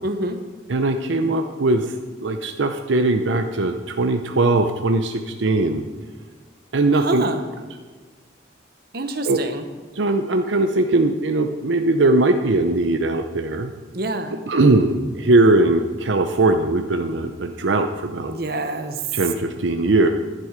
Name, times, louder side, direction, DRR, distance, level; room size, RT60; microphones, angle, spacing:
voice 1, 0.0-0.4 6.9-7.4 8.9-9.7 13.9-14.4 18.3-19.0, right 2 dB, 55° right, 6 dB, 1.1 m, -26 dB
voice 2, 0.7-5.8 6.7-7.2 9.3-9.4 9.9-13.7 14.5-18.3 19.1-20.1, right 2 dB, 85° right, 5 dB, 0.7 m, -20 dB
11.5 x 10.5 x 5.1 m, 1.4 s
head